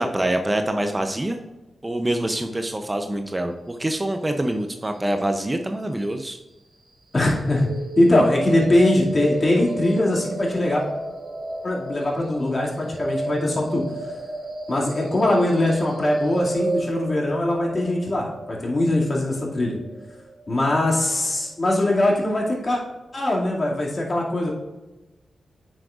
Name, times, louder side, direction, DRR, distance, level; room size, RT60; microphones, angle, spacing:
voice 1, 0.0-1.4 1.8-6.4, right 1 dB, 20° right, 6 dB, 0.6 m, -25 dB
voice 2, 7.1-7.7 8.0-10.8 11.6-13.8 14.7-19.8 20.5-22.8 23.1-24.5, left 1 dB, 40° left, -3 dB, 2.3 m, -21 dB
sound 1, 7.5-21.5, right 2 dB, 70° right, 1.8 m, -32 dB
9.6 x 6.2 x 2.5 m, 1.1 s
cardioid pair, 60°, 0 cm